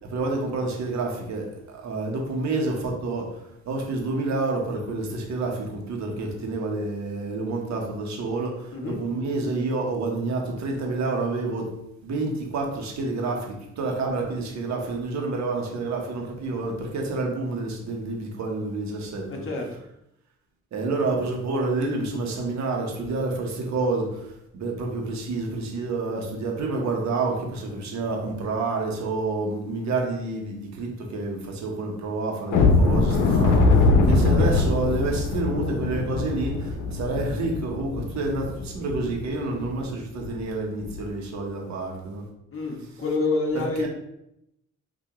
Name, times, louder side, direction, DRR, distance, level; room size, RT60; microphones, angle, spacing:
voice 1, 0.1-1.4 1.8-3.2 3.7-8.5 9.0-11.7 12.0-19.5 20.7-24.0 24.5-33.6 34.1-36.5 37.0-38.5 38.7-42.2 43.5-43.9, right 3 dB, 65° right, 1 dB, 1.2 m, -28 dB
voice 2, 19.3-19.7 42.5-43.9, left 3 dB, 45° left, 0 dB, 1.2 m, -27 dB
sound 1, 32.5-39.2 39.6-39.7 40.2-40.3 40.8-41.0, left 3 dB, 80° left, 0.8 m, -22 dB
6.1 x 2.7 x 3.1 m, 0.82 s
cardioid pair, 90°, 30 cm